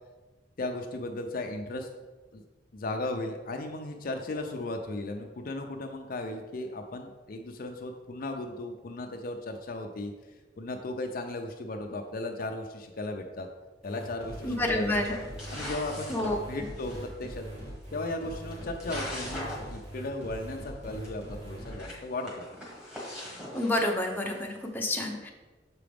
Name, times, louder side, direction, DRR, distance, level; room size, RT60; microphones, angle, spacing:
voice 1, 0.6-1.9 2.3-2.4 2.7-10.1 10.6-13.5 13.8-15.2 15.5-16.2 16.5-17.5 17.9-22.3, left 2 dB, 50° left, 4 dB, 0.5 m, -36 dB
sound 1, 13.8-21.7, equal, 35° right, 1.9 m, -42 dB
voice 2, 14.4-15.2 16.1-16.4 23.5-25.3, left 1 dB, 10° left, 0 dB, 0.7 m, -29 dB
sound 2, 14.4-14.6 15.0-17.0 18.1-18.2 18.5-19.8 20.1-20.2 20.4-20.5 21.0-21.1 21.6-24.4, left 1 dB, 5° right, 1.6 m, -41 dB
6.8 x 4.9 x 3.5 m, 1.2 s
head